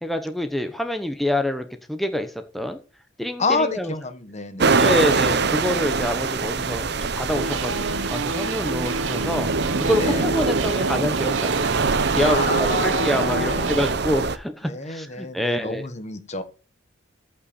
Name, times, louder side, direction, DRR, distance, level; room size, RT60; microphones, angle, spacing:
voice 1, 0.0-2.8 3.2-3.9 4.8-9.5 9.8-15.9, left 1 dB, ahead, 6 dB, 0.8 m, -26 dB
voice 2, 3.4-4.8 10.0-10.3 12.2-13.7 14.6-16.4, left 3 dB, 35° left, 11 dB, 1.1 m, -28 dB
sound 1, 4.6-14.4, right 4 dB, 55° right, 0.8 m, -24 dB
sound 2, 7.3-13.9, right 3 dB, 75° right, 1.2 m, -29 dB
14.0 x 5.6 x 4.2 m, 0.35 s
head